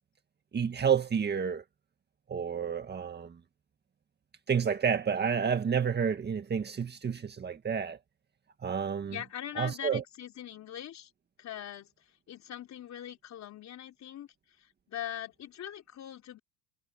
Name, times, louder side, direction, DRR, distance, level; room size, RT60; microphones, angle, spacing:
voice 1, 0.5-1.6 2.3-3.4 4.5-8.0 8.6-9.2 9.6-10.0, right 7 dB, 25° right, 1.9 m, -30 dB
voice 2, 9.1-11.1 11.4-16.4, left 11 dB, 40° left, 3.8 m, -42 dB
supercardioid pair, 115°, 42 cm